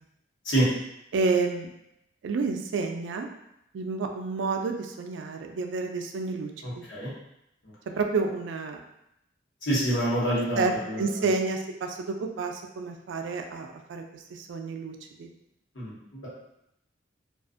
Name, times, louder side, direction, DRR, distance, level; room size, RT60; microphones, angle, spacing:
voice 1, 1.1-1.7 2.2-3.3 3.7-6.8 8.0-8.8 10.5-10.7 11.0-15.3, right 4 dB, 70° right, 4 dB, 0.3 m, -30 dB
voice 2, 6.6-7.1 7.6-7.7 9.6-11.0 15.7-16.3, right 1 dB, 75° left, -8 dB, 1.1 m, -27 dB
2.5 x 2.4 x 2.4 m, 0.82 s
head